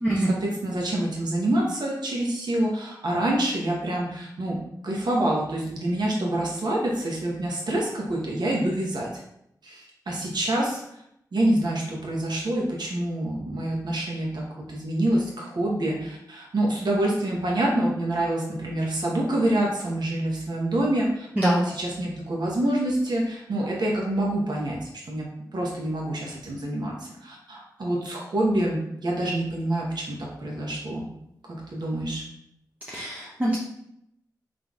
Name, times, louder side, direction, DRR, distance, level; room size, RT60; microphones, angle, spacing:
voice 1, 0.2-4.6 4.8-9.2 9.6-10.8 11.3-21.3 21.6-31.1 31.5-32.2, right 1 dB, 75° right, -2 dB, 1.1 m, -27 dB
voice 2, 32.9-33.6, right 1 dB, 20° right, -6 dB, 0.9 m, -23 dB
3.8 x 3.5 x 3.5 m, 0.78 s
wide cardioid pair, 70°, 7 cm